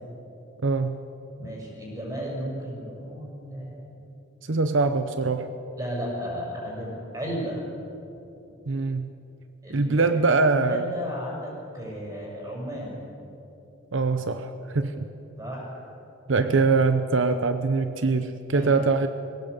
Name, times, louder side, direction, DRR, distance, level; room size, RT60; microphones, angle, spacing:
voice 1, 0.6-1.0 4.5-5.5 8.7-9.1 9.7-10.9 13.9-15.1 16.3-19.1, right 3 dB, 80° right, 9 dB, 0.8 m, -23 dB
voice 2, 1.4-4.0 5.8-7.6 9.6-10.2 10.6-13.1 15.4-15.9 18.5-18.9, equal, 15° right, -3 dB, 6.3 m, -34 dB
22.0 x 16.5 x 8.2 m, 2.9 s
head